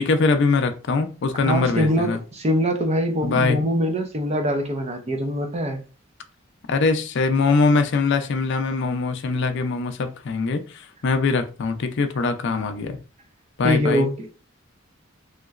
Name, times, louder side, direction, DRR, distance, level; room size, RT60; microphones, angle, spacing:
voice 1, 0.0-2.2 3.2-3.6 6.7-13.0 13.6-14.1, left 4 dB, 60° left, 0.4 m, -22 dB
voice 2, 1.4-5.8 13.6-14.4, equal, 30° right, 0.6 m, -23 dB
3.1 x 2.9 x 2.4 m
head